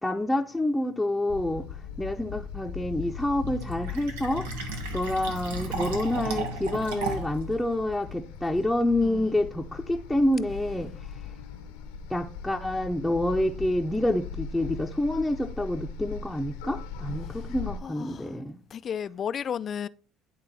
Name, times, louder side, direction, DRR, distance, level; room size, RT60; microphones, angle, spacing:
voice 1, 0.0-1.6 2.0-10.9 12.1-18.6, left 1 dB, 5° left, 0.7 m, -28 dB
sound 1, 1.3-17.8, left 7 dB, 80° left, 0.9 m, -39 dB
Fill (with liquid), 3.4-7.4, right 4 dB, 85° right, 1.1 m, -34 dB
voice 2, 9.0-9.3 17.8-18.3 18.7-19.9, left 8 dB, 45° left, 0.4 m, -33 dB
11.0 x 3.7 x 4.1 m
hypercardioid pair, 65°, 0 cm